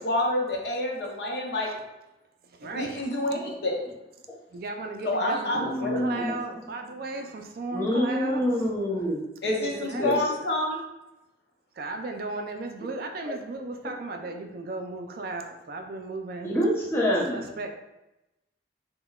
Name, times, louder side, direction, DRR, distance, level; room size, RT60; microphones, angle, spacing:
voice 1, 0.0-1.7 2.6-3.9 5.0-6.2 9.4-10.8, left 1 dB, 65° left, 0 dB, 0.7 m, -28 dB
voice 2, 2.4-3.1 4.5-8.7 9.4-10.1 11.7-16.5 17.3-17.7, right 3 dB, 55° right, 4 dB, 0.4 m, -36 dB
voice 3, 5.5-6.4 7.7-9.2 9.9-10.2 16.4-17.4, equal, 15° left, -5 dB, 0.7 m, -26 dB
5.3 x 2.2 x 2.3 m, 0.96 s
head